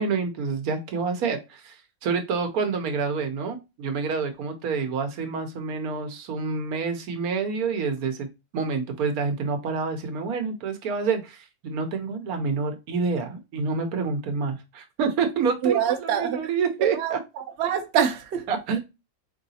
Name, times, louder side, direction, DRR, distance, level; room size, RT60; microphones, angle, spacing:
voice 1, 0.0-1.8 2.0-8.3 8.5-17.2 18.5-18.8, right 5 dB, 85° right, 1.2 m, -28 dB
voice 2, 15.6-16.4 16.8-18.4, right 8 dB, 60° right, 0.8 m, -25 dB
3.8 x 3.2 x 2.7 m
omnidirectional pair, 1.5 m